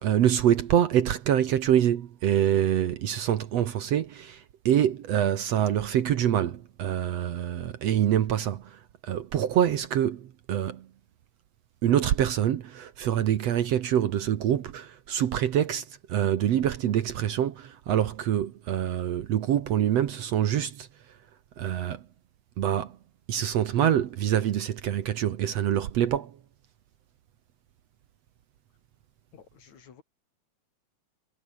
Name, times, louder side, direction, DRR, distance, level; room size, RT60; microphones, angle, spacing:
voice 1, 0.0-10.9 11.8-20.9 21.6-22.0 22.6-23.0 23.3-26.4, right 10 dB, 60° right, 2.0 m, -25 dB
voice 2, 29.3-30.0, left 7 dB, 60° left, 4.0 m, -53 dB
omnidirectional pair, 3.8 m